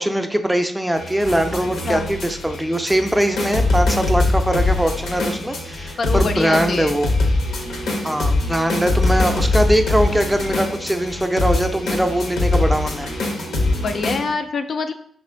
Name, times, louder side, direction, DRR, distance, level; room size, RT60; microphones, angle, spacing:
voice 1, 0.0-7.1 8.0-13.1, right 1 dB, 5° right, 6 dB, 0.5 m, -21 dB
sound 1, 1.0-14.2, left 2 dB, 80° left, 0.7 m, -22 dB
voice 2, 1.6-2.1 6.0-7.0 13.8-14.9, left 4 dB, 60° left, 7 dB, 0.3 m, -25 dB
sound 2, 6.3-14.3, right 3 dB, 70° right, 0.5 m, -39 dB
3.3 x 2.5 x 4.4 m, 0.64 s
cardioid pair, 60°, 0 cm